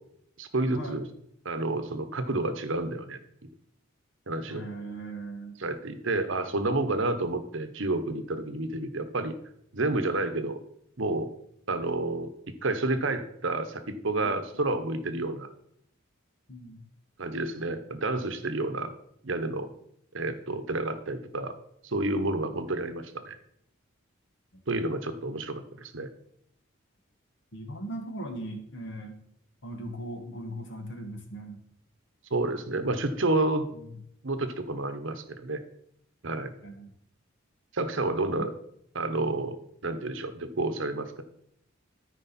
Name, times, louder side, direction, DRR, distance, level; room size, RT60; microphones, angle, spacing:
voice 1, 0.4-1.0 1.4-3.2 4.3-4.6 5.6-9.3 9.7-10.6 11.0-11.3 11.7-15.5 17.2-18.9 19.2-19.7 20.1-21.5 21.8-23.4 24.7-26.1 32.3-33.7 34.2-35.6 36.2-36.5 37.7-38.5 38.9-39.6 39.8-41.2, right 2 dB, 65° right, 9 dB, 0.9 m, -30 dB
voice 2, 4.5-5.6 14.2-14.3 16.5-16.8 22.4-22.6 24.5-24.6 27.5-29.1 29.6-31.6 33.7-34.0 36.6-36.9 38.3-38.5, right 1 dB, 60° left, 3 dB, 1.6 m, -39 dB
13.0 x 5.0 x 4.2 m, 0.73 s
head